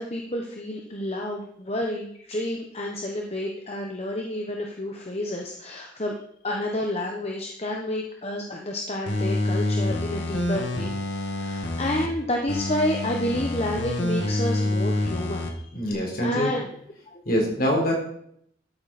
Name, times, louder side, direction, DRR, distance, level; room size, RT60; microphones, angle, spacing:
voice 1, 0.0-6.1 6.4-10.9 11.3-15.9 16.2-16.7 17.1-17.2, left 1 dB, 35° left, 1 dB, 1.2 m, -30 dB
sound 1, 9.1-12.1 12.5-15.5 15.9-16.0, left 1 dB, 80° left, 2.0 m, -27 dB
voice 2, 15.7-16.5 17.3-17.9, equal, 50° left, -1 dB, 3.9 m, -24 dB
13.5 x 8.9 x 4.4 m, 0.69 s
head